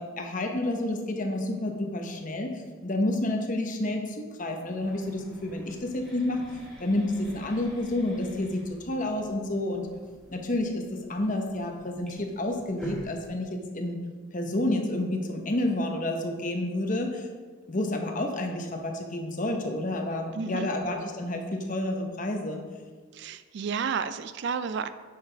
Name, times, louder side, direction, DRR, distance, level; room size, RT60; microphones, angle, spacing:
voice 1, 0.0-6.4 6.8-9.9 10.3-10.8 11.1-13.5 13.7-14.0 14.3-17.3 17.7-22.6, left 1 dB, 35° left, 3 dB, 1.0 m, -29 dB
sound 1, 4.7-13.3, equal, ahead, 2.0 m, -48 dB
voice 2, 20.3-20.7 23.1-24.9, right 6 dB, 55° right, 12 dB, 0.3 m, -31 dB
10.0 x 6.5 x 3.5 m, 1.5 s
head